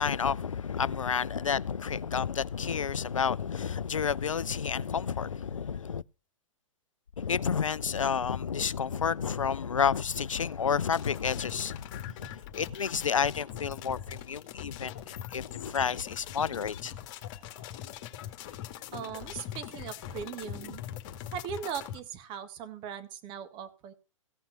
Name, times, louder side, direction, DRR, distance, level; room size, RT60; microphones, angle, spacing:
voice 1, 0.0-6.0 7.2-16.9, left 7 dB, 75° left, 0.5 m, -30 dB
sound 1, 10.9-22.0, left 11 dB, 35° left, 2.1 m, -42 dB
voice 2, 18.9-20.8 21.3-23.9, right 8 dB, 30° right, 1.8 m, -39 dB
16.0 x 5.9 x 6.7 m
figure-of-eight pair, 110°, 17 cm